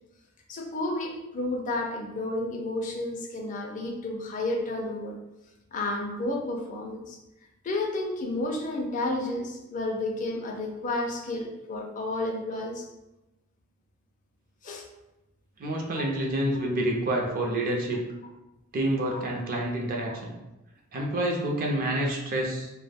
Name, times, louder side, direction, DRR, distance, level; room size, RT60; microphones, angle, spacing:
voice 1, 0.5-5.2 5.7-7.2 7.6-12.8 14.6-14.8 19.1-19.2 20.1-20.2, left 2 dB, 35° left, 1 dB, 0.4 m, -31 dB
voice 2, 15.6-18.0 18.7-20.3 20.9-22.7, right 1 dB, 40° right, 0 dB, 0.5 m, -28 dB
2.1 x 2.0 x 3.3 m, 0.97 s
head